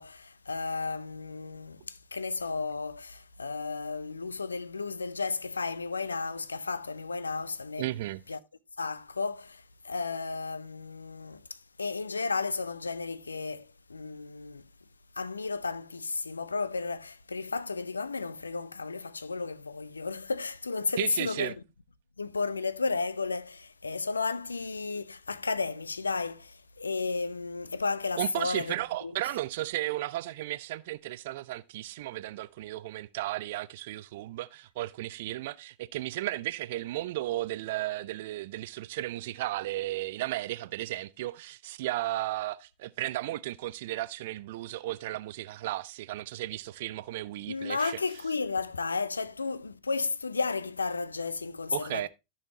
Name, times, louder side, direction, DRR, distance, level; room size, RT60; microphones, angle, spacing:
voice 1, 0.0-7.8 8.3-8.4 8.8-14.6 15.2-21.5 22.2-28.8 29.0-29.1 47.5-52.1, left 4 dB, 75° left, 0.5 m, -33 dB
voice 2, 7.8-8.2 21.0-21.5 28.2-48.0 51.7-52.1, right 16 dB, 55° right, 0.4 m, -34 dB
14.0 x 5.6 x 2.9 m
figure-of-eight pair, 90°, 0 cm